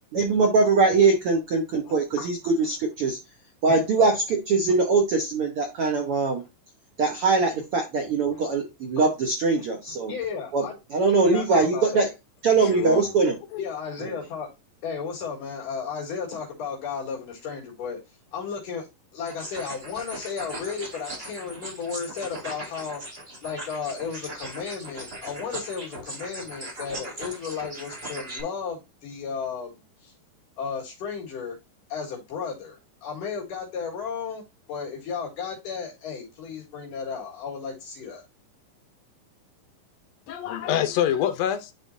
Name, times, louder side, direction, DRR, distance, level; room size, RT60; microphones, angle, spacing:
voice 1, 0.1-3.2 3.6-6.4 7.0-10.1 10.5-10.6 10.9-12.1 12.4-13.4, right 4 dB, 75° right, 1.2 m, -22 dB
voice 2, 1.8-2.3 5.9-6.1 6.4-6.5 8.3-8.5 9.0-9.1 9.6-9.7 10.0-10.8 11.2-12.1 13.6-14.5 14.8-18.9 19.1-23.0 23.4-30.1 30.6-31.6 31.9-34.4 34.7-38.3, left 6 dB, 65° left, 3.2 m, -34 dB
voice 3, 12.6-13.1 13.5-13.6 40.3-41.7, left 10 dB, 85° left, 1.5 m, -26 dB
sound 1, 19.3-28.4, right 1 dB, 55° right, 0.6 m, -39 dB
11.5 x 3.9 x 2.7 m
omnidirectional pair, 4.3 m